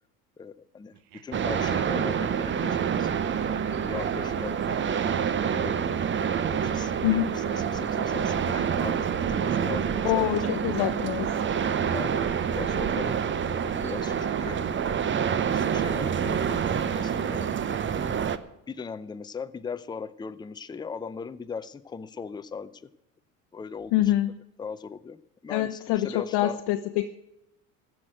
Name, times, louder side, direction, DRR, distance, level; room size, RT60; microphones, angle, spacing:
voice 1, 0.4-0.9 1.2-3.2 3.5-4.8 5.4-5.9 6.5-11.1 11.9-12.2 12.5-17.5 18.7-22.9 23.5-24.2 24.6-25.2 25.4-26.6, left 5 dB, 10° left, 12 dB, 0.5 m, -39 dB
Laughter, 0.9-7.7, right 11 dB, 65° right, 1.1 m, -47 dB
sound 1, 1.3-18.4, right 7 dB, 25° right, 0.7 m, -27 dB
voice 2, 10.0-11.3 23.9-24.3 25.5-27.1, left 14 dB, 60° left, 7 dB, 0.8 m, -25 dB
15.5 x 6.0 x 7.7 m, 0.87 s
hypercardioid pair, 85°, 44 cm